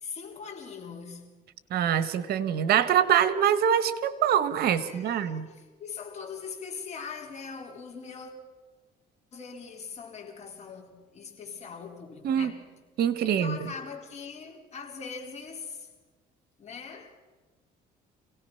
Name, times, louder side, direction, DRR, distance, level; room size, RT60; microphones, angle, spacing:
voice 1, 0.0-1.4 4.7-8.3 9.3-12.7 13.2-15.9 16.6-17.2, left 5 dB, 40° left, 4.4 m, -41 dB
voice 2, 1.7-5.5 12.2-12.5 13.0-13.6, right 9 dB, 65° right, 1.4 m, -24 dB
27.0 x 18.0 x 5.9 m
cardioid pair, 110°, 17 cm